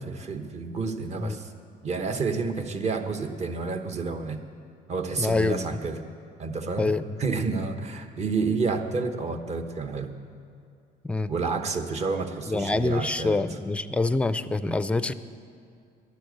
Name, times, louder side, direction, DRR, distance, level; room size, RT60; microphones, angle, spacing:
voice 1, 0.0-1.5 1.8-4.4 4.9-6.0 6.4-6.9 7.2-10.1 11.3-13.6, right 4 dB, 40° right, 6 dB, 1.1 m, -30 dB
voice 2, 5.2-5.8 6.8-7.2 11.0-11.3 12.5-15.1, left 3 dB, 5° left, 13 dB, 0.4 m, -26 dB
11.5 x 10.0 x 7.9 m, 2.4 s
cardioid pair, 110°, 17 cm